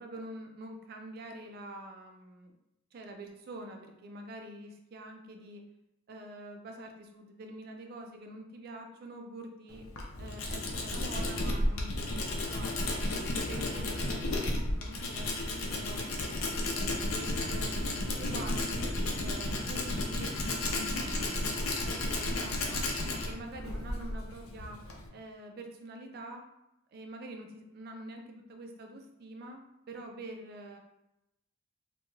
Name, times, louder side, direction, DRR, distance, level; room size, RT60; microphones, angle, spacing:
voice 1, 0.0-2.5 2.9-5.6 6.1-9.9 10.2-13.0 13.5-16.4 16.7-20.3 20.6-21.4 21.8-22.9 23.2-24.8 25.1-26.4 26.9-30.8, right 1 dB, 45° right, 4 dB, 0.3 m, -46 dB
Tools, 9.7-25.1, left 1 dB, 85° left, 0.5 m, -33 dB
2.4 x 2.2 x 3.0 m, 0.88 s
head